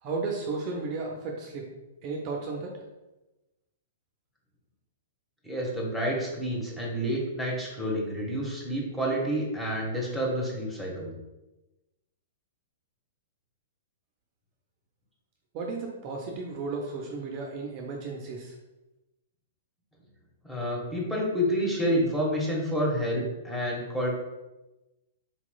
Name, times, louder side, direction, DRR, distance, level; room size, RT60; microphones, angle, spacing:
voice 1, 0.0-1.7 2.0-2.7 15.5-18.5, right 3 dB, 40° right, 0 dB, 0.5 m, -34 dB
voice 2, 5.4-11.1 20.4-24.1, equal, ahead, -4 dB, 1.1 m, -29 dB
4.1 x 2.9 x 2.2 m, 1.0 s
figure-of-eight pair, 110°, 0 cm